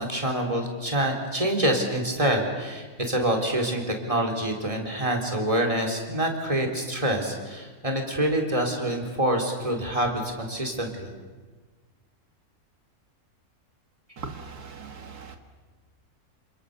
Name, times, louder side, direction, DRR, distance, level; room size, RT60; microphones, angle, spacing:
voice 1, 0.0-3.8 4.1-11.1, right 1 dB, 20° right, 2 dB, 4.2 m, -26 dB
voice 2, 14.2-15.4, right 5 dB, 80° right, 5 dB, 2.1 m, -39 dB
28.5 x 27.5 x 6.9 m, 1.4 s
omnidirectional pair, 1.6 m